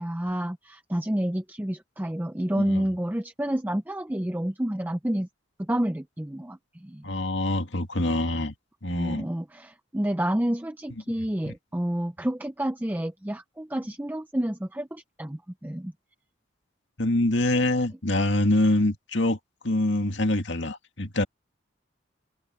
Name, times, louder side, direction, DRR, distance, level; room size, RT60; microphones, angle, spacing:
voice 1, 0.0-5.3 5.6-7.2 8.9-15.9, right 1 dB, 10° right, 0.6 m, -29 dB
voice 2, 7.0-8.5 8.8-9.3 11.4-11.5 17.0-19.4 19.6-21.3, left 1 dB, 70° left, 2.1 m, -25 dB
head